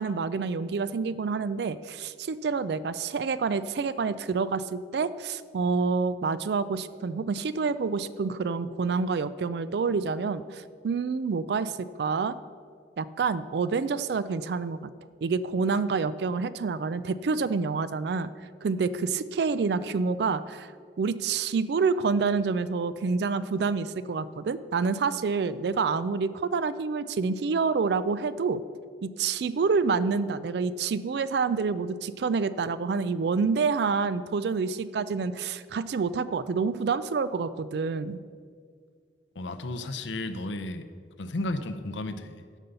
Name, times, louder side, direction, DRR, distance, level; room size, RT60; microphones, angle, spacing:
voice 1, 0.0-11.7 12.0-12.4 13.0-14.9 15.2-18.3 18.6-20.7 21.0-28.6 29.0-38.2, right 4 dB, 60° right, 15 dB, 0.4 m, -28 dB
voice 2, 39.4-40.8 41.2-42.4, left 2 dB, 85° left, 9 dB, 0.7 m, -33 dB
11.5 x 5.4 x 6.9 m, 2.1 s
head